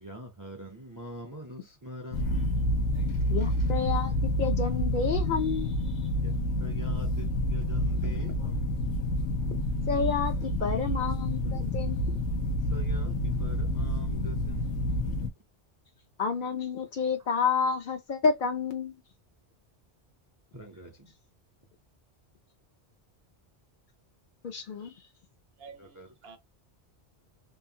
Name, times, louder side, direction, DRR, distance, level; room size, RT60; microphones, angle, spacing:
voice 1, 0.0-2.4 6.2-6.3 6.6-8.8 12.7-14.6 20.5-20.9 25.8-26.1, equal, 30° right, 0.4 m, -43 dB
sound 1, 2.1-15.3, left 1 dB, 80° left, 1.0 m, -28 dB
voice 2, 3.3-5.8 9.5-9.6 9.9-12.2 16.2-18.9 24.4-24.9, left 5 dB, 60° left, 0.6 m, -30 dB
voice 3, 25.6-26.4, right 5 dB, 70° right, 0.8 m, -49 dB
3.1 x 2.0 x 2.7 m
omnidirectional pair, 1.1 m